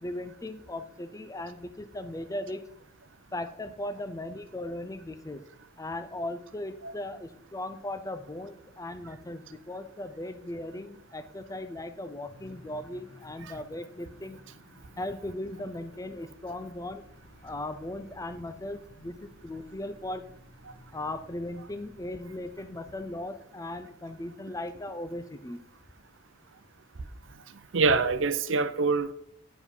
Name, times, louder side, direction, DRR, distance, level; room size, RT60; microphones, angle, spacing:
voice 1, 0.0-2.6 3.3-5.5 5.8-14.4 15.0-17.1 17.4-20.3 20.9-25.6, left 1 dB, 15° left, 0.5 m, -38 dB
sound 1, 12.3-23.2, left 1 dB, 60° left, 4.2 m, -55 dB
voice 2, 27.7-29.1, right 4 dB, 65° right, 0.7 m, -25 dB
9.9 x 4.9 x 5.3 m
head